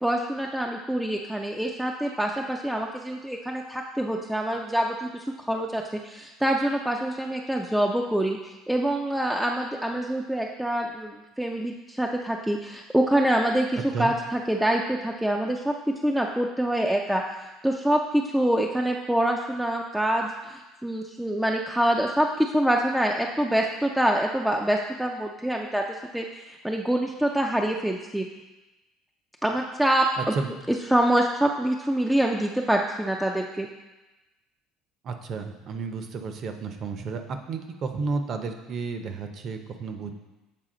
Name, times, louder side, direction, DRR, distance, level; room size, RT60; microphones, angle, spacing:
voice 1, 0.0-13.7 14.0-25.8 26.1-28.3 29.4-30.3 30.7-33.7, right 1 dB, 5° right, 0 dB, 0.4 m, -25 dB
voice 2, 30.2-30.5 35.0-40.1, right 4 dB, 45° right, 6 dB, 0.7 m, -32 dB
7.6 x 4.0 x 3.8 m, 1.1 s
cardioid pair, 120°, 0 cm